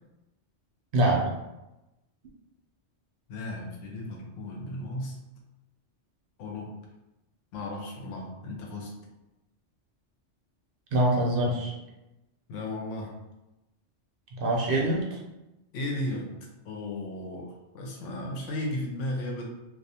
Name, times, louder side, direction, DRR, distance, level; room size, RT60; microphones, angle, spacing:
voice 1, 0.9-1.3 10.9-11.7 14.3-15.2, right 1 dB, 60° right, -2 dB, 0.6 m, -24 dB
voice 2, 3.3-5.2 6.4-6.7 7.5-8.9 12.5-13.1 15.7-16.3 16.6-19.4, left 1 dB, 85° left, 0 dB, 0.9 m, -35 dB
2.3 x 2.3 x 2.7 m, 0.97 s
omnidirectional pair, 1.2 m